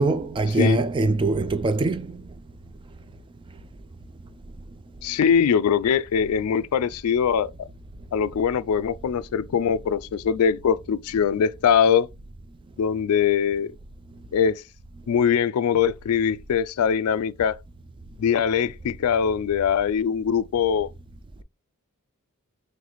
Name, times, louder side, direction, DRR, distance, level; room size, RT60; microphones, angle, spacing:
voice 1, 0.0-2.1, right 2 dB, 20° right, 0.3 m, -22 dB
voice 2, 5.0-7.5 8.1-12.1 12.8-13.7 14.3-14.6 15.1-17.6 18.2-20.9, left 7 dB, 85° left, 0.3 m, -22 dB
3.9 x 3.2 x 3.0 m
head